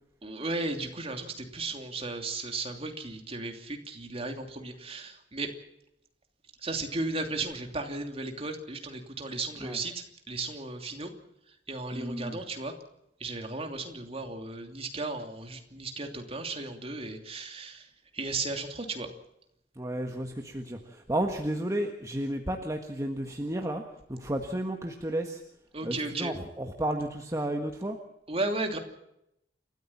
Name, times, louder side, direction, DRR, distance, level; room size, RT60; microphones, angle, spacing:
voice 1, 0.2-5.5 6.6-11.1 11.7-12.7 13.2-17.9 18.1-19.1 25.7-26.3 28.3-28.8, right 3 dB, 35° right, 4 dB, 2.9 m, -35 dB
voice 2, 11.9-12.4 19.7-23.8 24.1-25.4 25.8-28.0, right 1 dB, 20° right, 3 dB, 1.6 m, -32 dB
29.0 x 14.0 x 7.3 m, 0.81 s
head